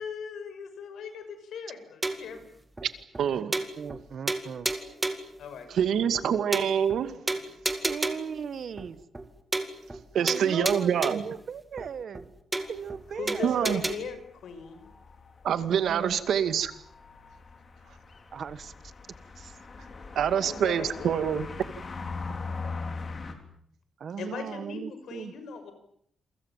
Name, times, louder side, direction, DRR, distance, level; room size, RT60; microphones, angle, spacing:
voice 1, 0.0-2.5 5.4-6.4 10.6-10.7 13.2-14.9 20.5-21.4 24.2-25.7, left 6 dB, 80° left, 6.1 m, -39 dB
sound 1, 2.0-2.4 2.8-2.9 3.1-3.2 3.5-4.0 4.3-5.3 5.8-5.9 6.1-6.2 6.5-7.0 7.3-8.4 8.8-8.9 9.1-9.3 9.5-10.0 10.3-11.3 11.8-11.9 12.1-12.2 12.5-13.0 13.3-13.9, right 2 dB, 10° right, 2.2 m, -31 dB
voice 2, 3.2-3.5 5.7-7.1 10.1-11.3 13.4-13.8 15.4-16.7 20.2-21.5, right 8 dB, 75° right, 2.2 m, -25 dB
voice 3, 3.7-4.7 7.8-9.0 10.1-12.3 12.7-13.9 15.8-16.2 18.3-18.9 19.4-19.6 24.0-25.3, right 7 dB, 50° right, 1.5 m, -38 dB
sound 2, 12.6-23.4, left 4 dB, 35° left, 3.5 m, -41 dB
28.0 x 24.5 x 7.5 m
wide cardioid pair, 165°, 0 cm